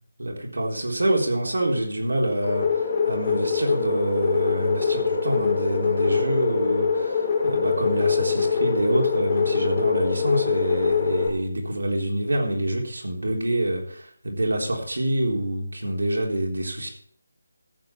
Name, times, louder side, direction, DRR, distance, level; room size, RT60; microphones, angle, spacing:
voice 1, 0.2-16.9, right 1 dB, 75° right, 0 dB, 3.7 m, -26 dB
sound 1, 2.4-11.3, left 6 dB, 30° left, 2.5 m, -24 dB
14.5 x 8.2 x 4.5 m, 0.62 s
figure-of-eight pair, 160°, 0 cm